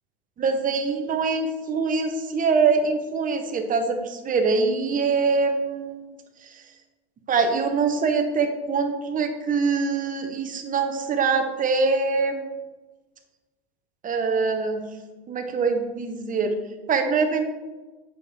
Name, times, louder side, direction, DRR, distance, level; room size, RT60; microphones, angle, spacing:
voice 1, 0.4-6.0 7.3-12.5 14.0-14.8 15.3-16.5 16.9-17.5, right 4 dB, 25° right, 6 dB, 1.0 m, -24 dB
8.2 x 6.8 x 3.3 m, 1.2 s
hypercardioid pair, 110°, 32 cm